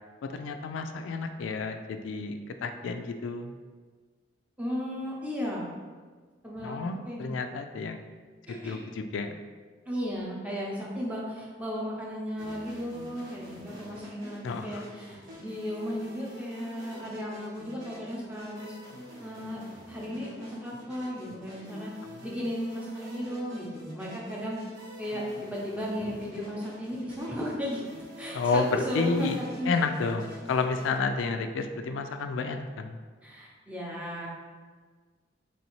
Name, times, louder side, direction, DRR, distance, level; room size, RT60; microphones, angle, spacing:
voice 1, 0.2-3.6 6.6-8.0 8.5-9.4 14.4-14.8 22.1-22.3 26.0-26.1 28.3-29.4 29.7-33.0, left 4 dB, 85° left, 7 dB, 0.3 m, -31 dB
voice 2, 4.6-5.7 6.4-6.8 7.1-7.3 8.5-8.8 9.9-18.7 19.2-19.6 19.9-21.9 22.2-24.6 25.0-27.8 28.2-29.7 33.2-34.3, equal, 5° right, -4 dB, 0.6 m, -35 dB
sound 1, 12.4-31.0, equal, 75° right, 1.0 m, -47 dB
4.0 x 3.1 x 3.0 m, 1.5 s
head